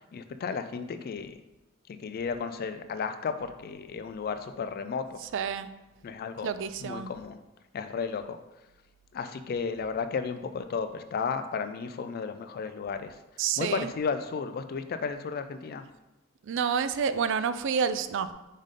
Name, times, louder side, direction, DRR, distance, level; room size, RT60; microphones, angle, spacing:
voice 1, 0.0-1.4 1.9-5.2 6.0-6.5 6.8-7.4 7.7-8.4 9.1-13.2 13.6-15.8, left 5 dB, 45° left, 9 dB, 0.3 m, -33 dB
voice 2, 5.3-5.7 6.4-7.1 13.4-13.9 16.4-18.3, right 6 dB, 60° right, 12 dB, 0.4 m, -29 dB
5.3 x 5.1 x 3.7 m, 1.0 s
head